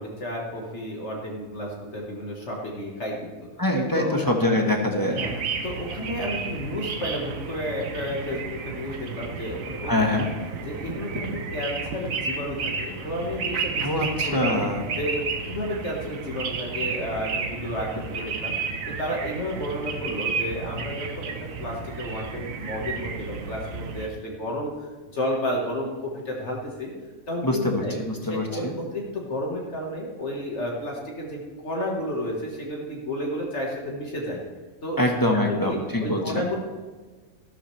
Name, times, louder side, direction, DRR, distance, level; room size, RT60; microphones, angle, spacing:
voice 1, 0.0-3.5 3.9-4.2 5.1-5.3 5.6-9.9 10.6-14.6 14.9-15.2 15.5-18.5 18.9-21.3 21.6-26.9 27.3-27.9 28.2-34.4 34.8-36.6, equal, 55° left, -2 dB, 1.9 m, -32 dB
voice 2, 3.6-5.2 9.8-10.3 13.8-14.8 27.4-28.8 35.0-36.5, left 1 dB, 15° left, 1 dB, 1.3 m, -24 dB
sound 1, 5.2-24.1, right 5 dB, 70° right, 1.3 m, -32 dB
13.5 x 12.5 x 3.3 m, 1.3 s
omnidirectional pair, 1.5 m